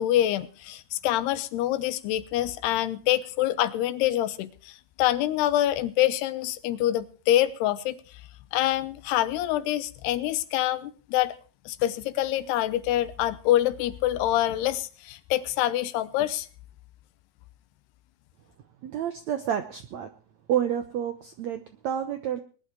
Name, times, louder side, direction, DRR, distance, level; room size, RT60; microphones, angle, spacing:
voice 1, 0.0-8.0 8.5-11.3 11.7-16.5, left 13 dB, 90° left, 14 dB, 3.0 m, -26 dB
voice 2, 18.8-20.1 20.5-22.4, right 9 dB, 80° right, 8 dB, 1.6 m, -29 dB
20.5 x 11.5 x 4.6 m, 0.38 s
omnidirectional pair, 4.6 m